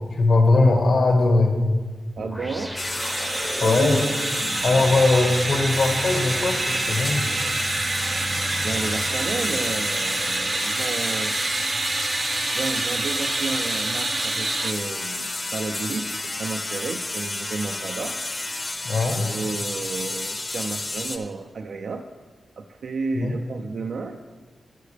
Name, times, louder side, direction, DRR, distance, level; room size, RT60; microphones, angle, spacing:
voice 1, 0.1-1.5 3.6-4.1 4.6-7.2 18.8-19.3 23.1-23.4, left 3 dB, 65° left, 3 dB, 1.6 m, -20 dB
sound 1, 2.2-11.0, equal, ahead, 0.7 m, -37 dB
voice 2, 2.2-2.7 3.6-4.1 4.7-4.8 8.6-11.3 12.5-18.2 19.1-22.1 22.6-24.2, right 4 dB, 80° right, 4 dB, 0.5 m, -32 dB
sound 2, 2.8-21.2, left 2 dB, 30° left, 0.8 m, -31 dB
sound 3, 3.0-14.7, right 3 dB, 40° right, 0.6 m, -27 dB
13.0 x 10.0 x 3.4 m, 1.4 s
wide cardioid pair, 125°, 0 cm